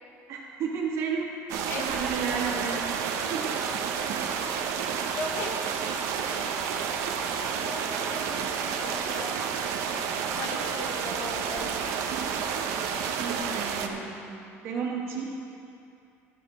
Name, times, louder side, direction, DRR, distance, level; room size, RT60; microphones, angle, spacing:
voice 1, 0.3-1.3 1.8-2.9 3.3-3.6 13.2-14.2 14.6-15.2, right 5 dB, 55° right, -2 dB, 1.9 m, -32 dB
sound 1, 1.5-13.9, right 7 dB, 70° right, 0.8 m, -30 dB
voice 2, 5.1-5.5 7.5-9.3 10.3-12.0, left 2 dB, 50° left, 2 dB, 1.3 m, -38 dB
11.5 x 5.2 x 8.7 m, 2.6 s
cardioid pair, 150°, 6 cm